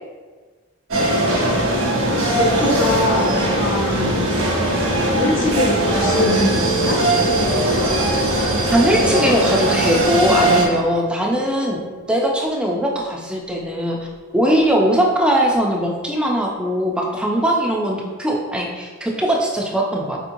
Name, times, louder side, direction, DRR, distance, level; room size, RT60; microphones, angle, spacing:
sound 1, 0.9-10.7, right 1 dB, 85° right, 1.0 m, -20 dB
sound 2, 1.0-9.0, equal, 60° right, 0.6 m, -31 dB
voice 1, 2.1-4.3 5.0-7.0, left 2 dB, 70° left, -3 dB, 0.7 m, -22 dB
sound 3, 5.0-15.7, equal, 85° left, 1.0 m, -32 dB
voice 2, 8.7-11.8 12.1-14.0 14.3-20.2, equal, 5° right, -2 dB, 0.3 m, -20 dB
4.3 x 2.8 x 2.6 m, 1.4 s
head